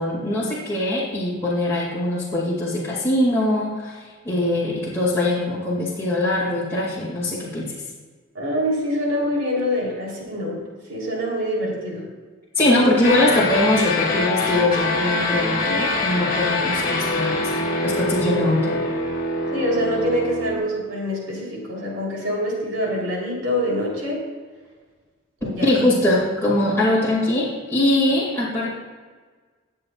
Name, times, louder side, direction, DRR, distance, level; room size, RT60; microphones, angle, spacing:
voice 1, 0.0-7.7 12.6-17.4 17.8-18.8 25.6-28.7, left 1 dB, 10° left, -8 dB, 2.2 m, -22 dB
voice 2, 8.3-10.6 10.9-12.1 19.5-24.3 25.4-25.8, equal, 70° right, -4 dB, 3.5 m, -25 dB
sound 1, 13.0-20.6, left 2 dB, 45° left, 1.9 m, -24 dB
20.0 x 7.7 x 2.4 m, 1.4 s
head